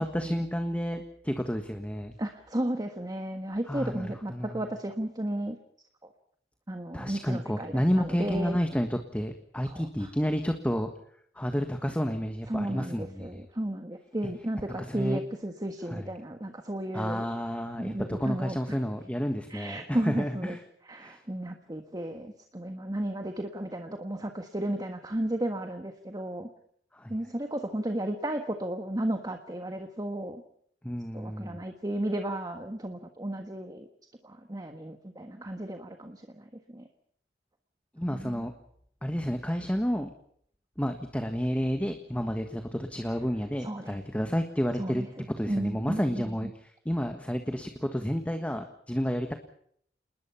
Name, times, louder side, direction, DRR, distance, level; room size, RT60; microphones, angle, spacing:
voice 1, 0.0-2.1 3.7-4.7 6.9-10.9 11.3-13.4 14.8-15.2 15.9-16.1 16.9-20.6 21.0-21.2 26.9-27.1 30.8-31.6 38.0-38.5 39.0-40.1 40.8-45.0 45.4-46.5 46.8-49.3, equal, 10° left, 6 dB, 1.5 m, -30 dB
voice 2, 2.2-5.6 6.0-6.1 6.7-8.6 9.6-10.1 12.5-17.2 17.8-18.8 19.5-20.6 20.8-26.5 27.1-30.4 31.1-33.9 34.2-36.9 38.1-38.4 43.6-44.0 44.8-46.5, right 1 dB, 20° right, 6 dB, 1.5 m, -34 dB
28.5 x 20.0 x 5.8 m, 0.66 s
head